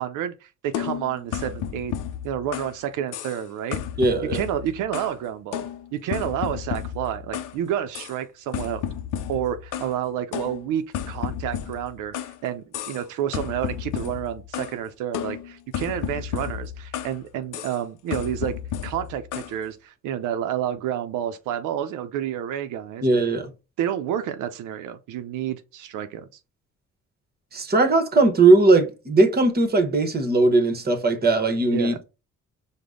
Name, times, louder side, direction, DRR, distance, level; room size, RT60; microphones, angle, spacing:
voice 1, 0.0-1.9 2.2-3.8 4.3-8.8 9.3-12.1 12.4-18.5 18.8-23.1 23.8-26.3 31.7-32.0, right 10 dB, 90° right, 0.5 m, -29 dB
sound 1, 0.7-2.8 3.1-3.4 3.7-5.2 5.5-7.6 7.9-8.2 8.5-10.0 10.3-12.4 12.7-13.1 13.3-14.8 15.1-17.2 17.5-17.8 18.1-19.5, left 10 dB, 90° left, 0.5 m, -32 dB
voice 2, 4.0-4.4 23.0-23.5 27.5-32.0, right 3 dB, 30° right, 1.0 m, -19 dB
5.0 x 2.1 x 3.7 m
cardioid pair, 90°, 30 cm